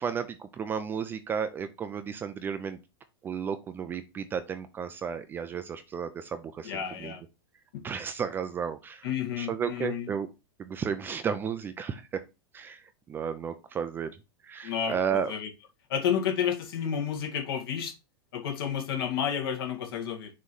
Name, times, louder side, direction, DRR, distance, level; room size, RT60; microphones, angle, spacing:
voice 1, 0.0-2.8 3.2-6.7 7.0-7.1 7.8-9.1 9.4-10.3 10.6-12.2 12.5-12.8 13.1-14.2 14.4-15.3, right 7 dB, 15° right, 10 dB, 0.4 m, -33 dB
voice 2, 6.6-7.2 7.7-7.8 9.0-10.1 14.6-15.5 15.9-17.9 18.3-20.3, left 8 dB, 65° left, 2 dB, 2.0 m, -31 dB
6.3 x 3.2 x 5.5 m, 0.26 s
supercardioid pair, 155°, 13 cm